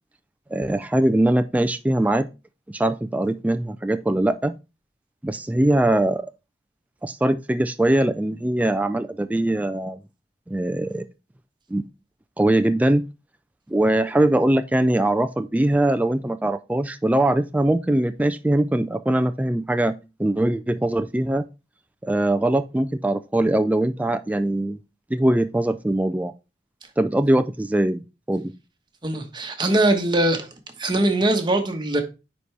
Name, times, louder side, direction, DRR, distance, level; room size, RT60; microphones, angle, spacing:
voice 1, 0.5-2.3 2.7-4.6 5.2-6.2 7.0-10.0 10.5-11.0 11.7-11.9 12.4-13.1 13.7-19.9 20.2-21.5 22.0-24.8 25.1-26.3 27.0-28.0 28.3-28.5, right 1 dB, 10° right, 0.3 m, -21 dB
voice 2, 29.0-30.5 30.8-32.0, right 1 dB, 25° right, 1.2 m, -21 dB
9.5 x 4.2 x 3.3 m
head